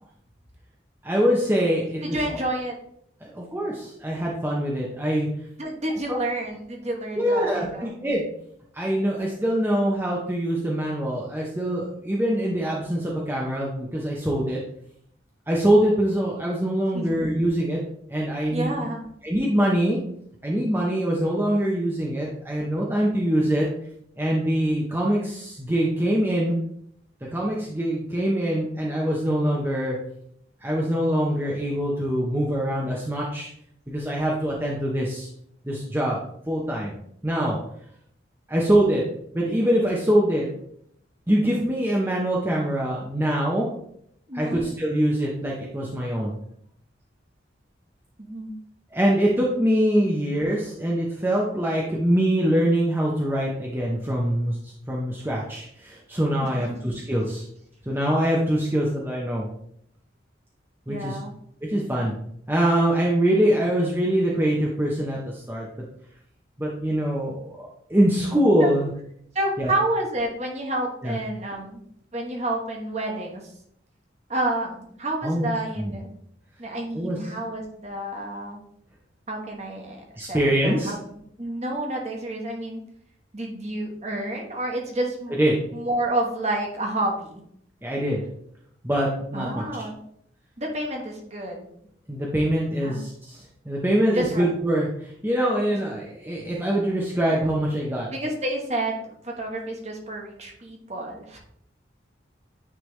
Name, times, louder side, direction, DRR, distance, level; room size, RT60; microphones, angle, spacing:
voice 1, 1.0-2.2 3.2-5.3 6.1-6.2 7.2-8.3 8.7-14.6 15.5-17.8 18.1-18.8 19.2-20.0 20.4-23.7 24.2-26.6 27.3-30.0 30.6-33.5 33.9-35.3 35.6-36.2 36.5-36.9 37.2-37.6 38.5-39.0 39.3-40.5 41.3-43.7 44.3-46.3 48.9-57.4 57.9-59.5 60.9-61.2 61.6-62.1 62.5-65.7 66.6-67.6 67.9-68.9 69.6-69.7 71.0-71.2 75.2-75.5 75.8-75.9 76.9-77.2 80.2-80.9 85.4-85.5 87.8-88.2 88.8-89.6 92.1-98.1, equal, 10° right, -4 dB, 0.8 m, -24 dB
voice 2, 2.0-2.7 5.6-7.9 16.9-17.0 18.5-19.0 44.3-44.7 48.2-48.5 56.5-56.8 60.9-61.3 68.6-68.7 69.3-71.8 72.1-73.4 74.3-76.2 76.6-78.6 79.3-82.8 83.3-85.4 85.7-87.4 89.3-90.0 90.6-91.7 92.8-93.0 94.1-94.5 98.1-101.4, right 1 dB, 35° right, 0 dB, 1.3 m, -29 dB
9.2 x 3.4 x 3.2 m, 0.70 s
head